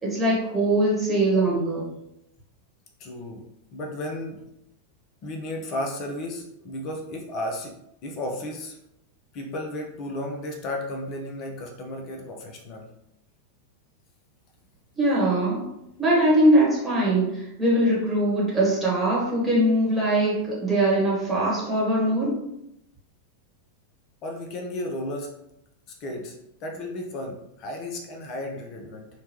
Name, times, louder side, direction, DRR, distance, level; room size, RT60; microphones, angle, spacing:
voice 1, 0.0-1.9 15.0-15.7 16.0-22.4, right 1 dB, 10° right, -6 dB, 1.2 m, -22 dB
voice 2, 3.0-3.4 3.7-4.5 5.2-8.8 9.3-12.9 24.2-25.3 26.0-26.3 26.6-29.1, left 1 dB, 40° left, 2 dB, 0.5 m, -34 dB
2.8 x 2.2 x 3.0 m, 0.80 s
figure-of-eight pair, 90°, 0 cm